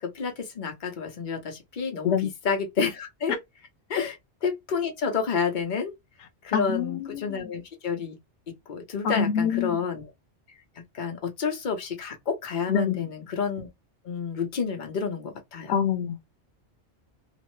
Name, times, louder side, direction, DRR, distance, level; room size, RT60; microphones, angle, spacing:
voice 1, 0.0-2.2 2.4-3.4 3.9-4.1 4.4-5.9 6.4-8.2 8.7-10.0 10.9-13.7 14.0-15.7, left 5 dB, 45° left, 0.9 m, -29 dB
voice 2, 6.5-7.5 9.0-9.8 12.7-13.1 15.7-16.3, left 7 dB, 85° left, 0.9 m, -26 dB
3.0 x 2.0 x 3.0 m
omnidirectional pair, 1.1 m